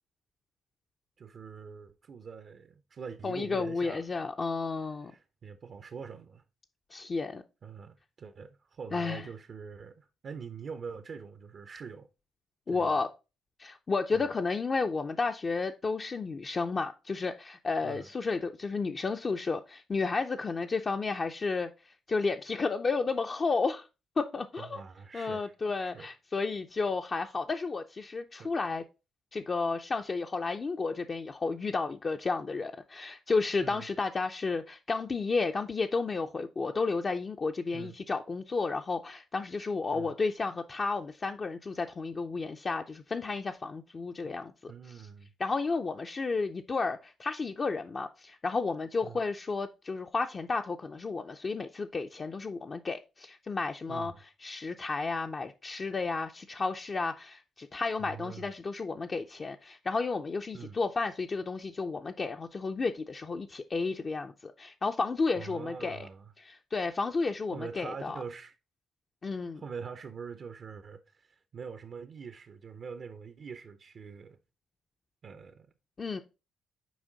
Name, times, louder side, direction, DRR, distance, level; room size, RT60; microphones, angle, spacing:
voice 1, 1.2-4.0 5.0-6.4 7.6-12.1 12.7-13.0 14.1-14.3 17.8-18.1 24.6-25.5 25.8-26.1 28.4-28.5 33.6-33.9 37.7-38.0 39.9-40.1 44.2-44.3 44.7-45.3 49.0-49.2 53.9-54.2 58.0-58.5 60.5-60.8 65.4-66.3 67.5-68.5 69.5-74.4 75.2-75.7, right 6 dB, 50° right, 0.5 m, -44 dB
voice 2, 3.2-5.1 6.9-7.4 8.9-9.2 12.7-13.1 13.6-21.7 22.1-23.9 24.2-24.8 25.1-28.8 29.3-44.7 45.4-54.1 54.4-66.1 66.4-68.2 69.2-69.6 76.0-76.2, left 4 dB, 35° left, 0.4 m, -32 dB
6.2 x 4.3 x 3.8 m
cardioid pair, 90°, 0 cm